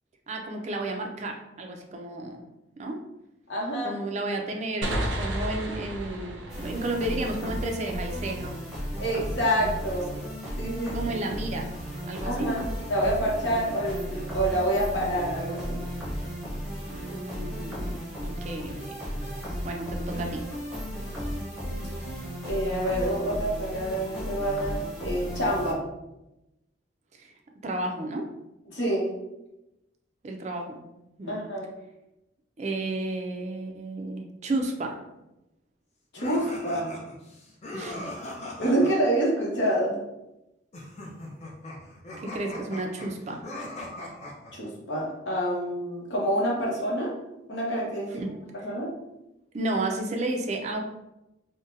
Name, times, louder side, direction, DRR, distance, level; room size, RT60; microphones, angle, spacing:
voice 1, 0.3-2.4 2.8-3.0 3.8-8.5 10.9-11.7 12.1-12.5 16.9-19.0 19.2-20.5 27.2-27.3 27.6-28.3 30.2-30.8 31.2-31.4 32.6-35.0 37.7-38.1 42.2-43.4 48.1-48.3 48.6-48.7 49.5-50.8, right 2 dB, 40° right, 3 dB, 0.4 m, -32 dB
voice 2, 3.5-4.0 9.0-10.1 10.6-11.0 12.2-12.6 12.9-15.8 22.5-25.8 28.7-29.1 31.3-31.7 36.1-36.9 38.6-40.0 44.5-47.1 47.5-48.2 48.6-48.9, right 1 dB, 70° left, -3 dB, 0.9 m, -27 dB
sound 1, 4.8-8.3, right 1 dB, 85° right, 0.5 m, -33 dB
sound 2, 6.5-25.7, equal, 5° right, 0.8 m, -34 dB
sound 3, 36.2-39.0 40.7-44.5, left 1 dB, 35° left, 0.6 m, -40 dB
3.8 x 2.1 x 2.6 m, 0.93 s
head